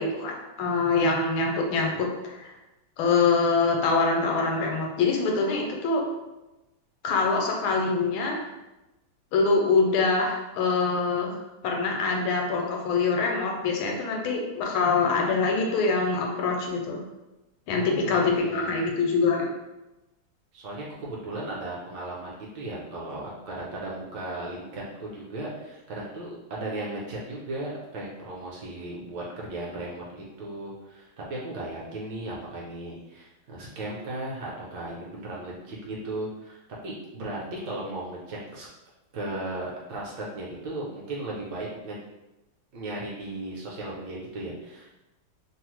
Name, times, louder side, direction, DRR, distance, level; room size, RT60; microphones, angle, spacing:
voice 1, 0.0-2.5 3.0-6.0 7.0-8.4 9.3-11.3 11.6-17.0 17.7-19.5, left 4 dB, 85° left, 0 dB, 1.4 m, -24 dB
voice 2, 17.7-18.8 20.5-38.7 39.1-42.0 42.7-44.9, right 1 dB, 70° right, -4 dB, 1.1 m, -36 dB
3.3 x 2.0 x 3.0 m, 1.0 s
omnidirectional pair, 2.2 m